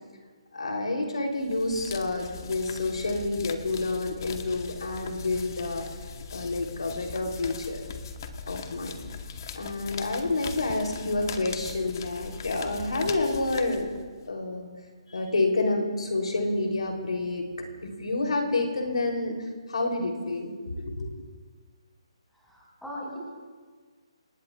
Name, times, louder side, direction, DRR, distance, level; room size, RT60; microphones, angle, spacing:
voice 1, 0.5-5.9 6.3-7.8 8.5-9.0 9.5-13.9 14.3-14.7 15.1-17.4 17.8-19.3 19.7-21.1, left 2 dB, 90° left, 2 dB, 3.3 m, -29 dB
sound 1, 1.4-14.3, left 6 dB, 40° left, 1.0 m, -40 dB
voice 2, 22.5-23.2, equal, ahead, -6 dB, 5.4 m, -39 dB
28.5 x 17.5 x 2.4 m, 1.5 s
hypercardioid pair, 165°, 3 cm